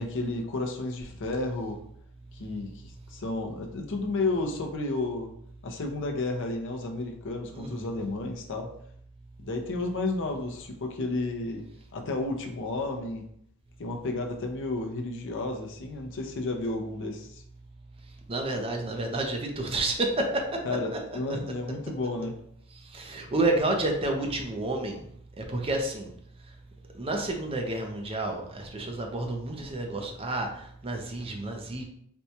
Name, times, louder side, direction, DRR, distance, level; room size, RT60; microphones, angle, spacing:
voice 1, 0.0-1.8 2.3-5.3 5.6-8.7 9.4-11.7 11.9-13.3 13.8-17.4 20.6-22.4, left 2 dB, 55° left, 3 dB, 0.6 m, -32 dB
voice 2, 7.5-7.9 18.3-20.6 20.9-21.0 22.9-25.0 25.4-26.1 26.9-31.8, right 2 dB, 25° right, 2 dB, 0.5 m, -30 dB
4.3 x 2.2 x 2.7 m, 0.68 s
head